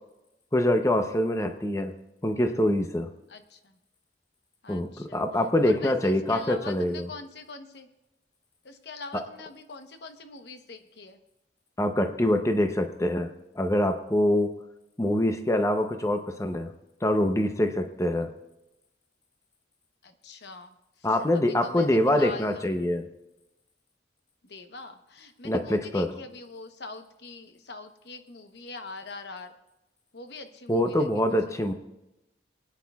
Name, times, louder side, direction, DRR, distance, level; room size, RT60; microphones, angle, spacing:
voice 1, 0.5-1.9 2.2-3.1 4.7-7.1 11.8-13.3 13.6-14.5 15.0-16.7 17.0-18.3 21.0-23.0 25.4-26.1 30.7-31.7, left 1 dB, 15° left, 6 dB, 0.6 m, -25 dB
voice 2, 3.3-3.8 4.6-5.2 5.6-7.9 8.6-11.2 20.0-22.6 24.4-29.5 30.1-31.1 31.5-31.6, left 3 dB, 65° left, 7 dB, 0.9 m, -43 dB
23.0 x 9.4 x 2.3 m, 0.92 s
head